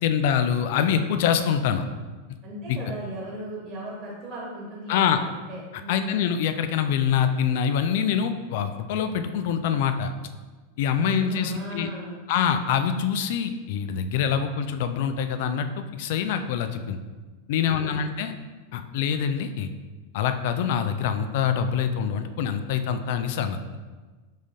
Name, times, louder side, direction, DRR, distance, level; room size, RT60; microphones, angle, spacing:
voice 1, 0.0-1.8 2.7-2.8 4.9-5.2 5.9-10.1 10.8-11.9 12.3-17.0 17.5-18.3 18.7-19.7 20.1-23.8, left 8 dB, 50° left, 9 dB, 0.3 m, -25 dB
voice 2, 2.4-5.1 5.5-6.2 11.0-12.2 17.6-18.1, equal, 35° right, -4 dB, 1.3 m, -37 dB
5.2 x 3.6 x 2.7 m, 1.3 s
figure-of-eight pair, 90°, 0 cm